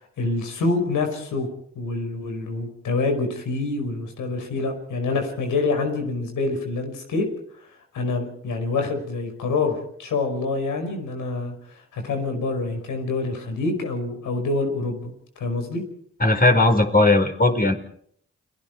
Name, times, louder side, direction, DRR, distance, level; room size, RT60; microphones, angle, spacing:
voice 1, 0.0-1.5 1.8-7.3 7.9-11.5 11.9-15.8, left 3 dB, 85° left, 5 dB, 5.3 m, -26 dB
voice 2, 16.2-17.7, left 2 dB, 30° left, 4 dB, 4.9 m, -17 dB
29.5 x 19.5 x 4.7 m, 0.65 s
supercardioid pair, 45°, 30 cm